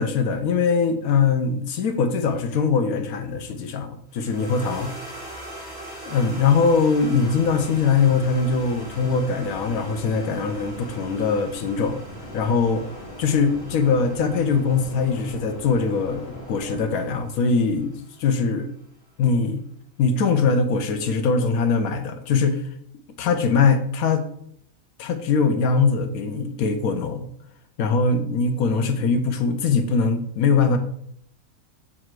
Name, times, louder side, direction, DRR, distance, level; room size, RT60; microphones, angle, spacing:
voice 1, 0.0-4.9 6.1-12.0 12.3-12.8 13.2-18.7 19.2-19.6 20.0-22.6 23.2-24.2 25.0-27.2 27.8-30.8, left 5 dB, 85° left, 8 dB, 1.2 m, -22 dB
sound 1, 4.1-18.5, right 1 dB, 40° left, 2.8 m, -42 dB
sound 2, 7.0-16.8, left 1 dB, 65° left, 2.1 m, -41 dB
7.5 x 4.2 x 4.6 m, 0.67 s
omnidirectional pair, 1.5 m